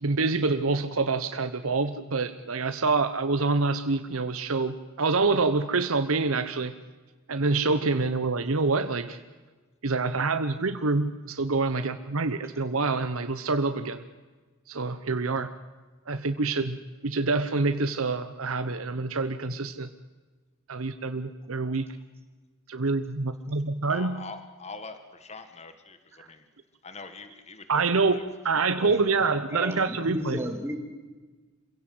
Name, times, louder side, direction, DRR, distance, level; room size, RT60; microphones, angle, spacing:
voice 1, 0.0-6.7 7.3-9.2 9.8-14.0 14.7-15.5 16.1-16.8 17.0-19.9 20.7-21.9 22.7-24.2 27.7-30.4, right 3 dB, 80° right, 9 dB, 1.0 m, -26 dB
voice 2, 23.9-26.4 26.8-28.2 28.6-28.7 29.2-29.3, left 4 dB, 30° left, 8 dB, 1.7 m, -44 dB
voice 3, 28.8-29.1 29.5-30.7, equal, 10° right, 2 dB, 3.3 m, -33 dB
26.5 x 16.5 x 7.8 m, 1.3 s
head